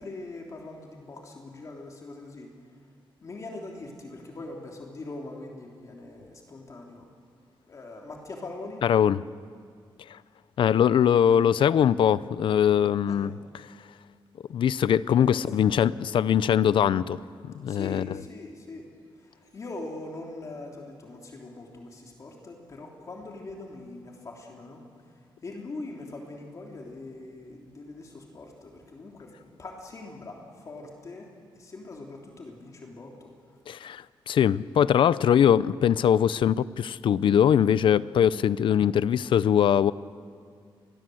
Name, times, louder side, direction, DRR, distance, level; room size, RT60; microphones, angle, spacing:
voice 1, 0.0-2.5 3.2-7.0 7.7-8.8 13.0-13.3 15.1-15.6 17.7-18.9 19.1-31.3 31.5-33.3, left 2 dB, 35° left, 3.2 m, -42 dB
voice 2, 8.8-9.2 10.1-10.2 10.6-13.3 14.5-17.2 17.5-18.1 33.7-39.9, left 9 dB, 70° left, 0.6 m, -22 dB
29.0 x 22.5 x 7.8 m
wide cardioid pair, 155°, 9 cm